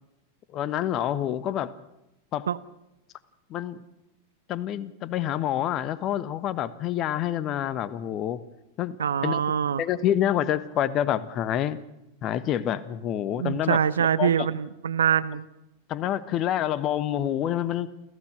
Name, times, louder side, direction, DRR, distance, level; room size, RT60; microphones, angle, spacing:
voice 1, 0.5-1.7 2.3-2.5 3.5-3.8 4.5-8.4 8.8-9.0 9.2-9.4 9.8-11.8 12.2-13.8 14.2-14.5 15.9-17.9, left 11 dB, 35° left, 17 dB, 1.1 m, -27 dB
voice 2, 9.0-9.8 13.4-15.5, right 8 dB, 65° right, 15 dB, 0.8 m, -24 dB
29.0 x 15.0 x 6.4 m, 0.90 s
figure-of-eight pair, 90°, 0 cm